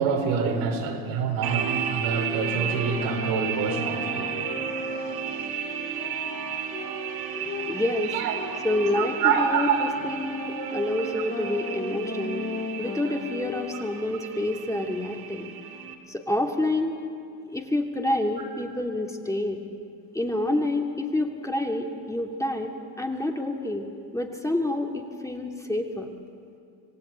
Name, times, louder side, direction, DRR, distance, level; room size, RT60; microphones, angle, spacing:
voice 1, 0.0-4.4 8.1-8.3 8.9-9.8 10.4-10.8 13.7-13.8, right 6 dB, 75° right, 2 dB, 4.8 m, -27 dB
sound 1, 1.4-15.9, right 8 dB, 55° right, 2.9 m, -34 dB
sound 2, 2.2-7.7 8.3-13.7, left 1 dB, 30° left, 4.2 m, -36 dB
voice 2, 7.7-8.2 8.6-12.5 12.8-15.5 16.1-17.0 17.5-19.6 20.1-23.9 24.1-26.1, left 1 dB, 5° left, 1 dB, 2.7 m, -28 dB
27.0 x 17.5 x 9.0 m, 2.4 s
hypercardioid pair, 85°, 44 cm